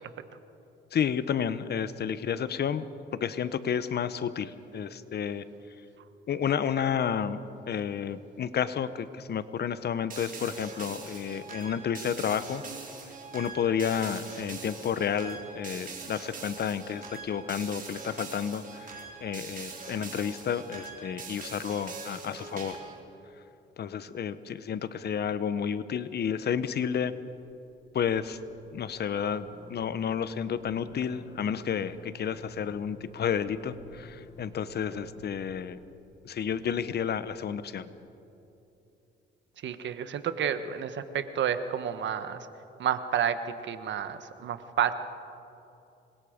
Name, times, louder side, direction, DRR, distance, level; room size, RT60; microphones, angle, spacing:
voice 1, 0.9-2.8 3.1-5.4 6.3-7.4 7.7-12.6 13.3-22.8 23.8-27.1 27.9-28.4 28.7-35.8 36.2-37.9, left 8 dB, 55° left, 14 dB, 1.0 m, -31 dB
sound 1, 10.1-23.0, right 4 dB, 45° right, 3.9 m, -43 dB
sound 2, 27.7-37.9, left 1 dB, 40° left, 6.0 m, -51 dB
voice 2, 39.6-42.5 42.8-44.9, right 8 dB, 65° right, 10 dB, 1.3 m, -30 dB
27.0 x 22.5 x 5.2 m, 2.8 s
cardioid pair, 90°, 20 cm